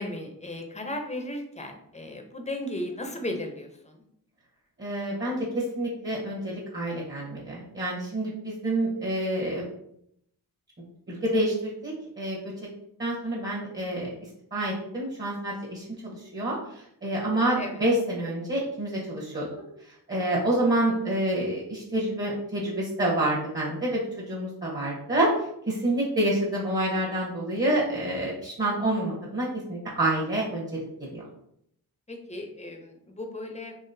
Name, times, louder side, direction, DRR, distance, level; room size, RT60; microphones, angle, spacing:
voice 1, 0.0-4.0 17.6-17.7 32.1-33.7, left 1 dB, 15° left, 3 dB, 0.7 m, -35 dB
voice 2, 4.8-9.6 11.1-12.5 13.0-14.1 14.5-19.5 20.1-25.3 25.7-30.8 31.1-31.2, right 1 dB, 30° right, -4 dB, 1.2 m, -28 dB
3.8 x 3.0 x 2.7 m, 0.74 s
cardioid pair, 55°, 39 cm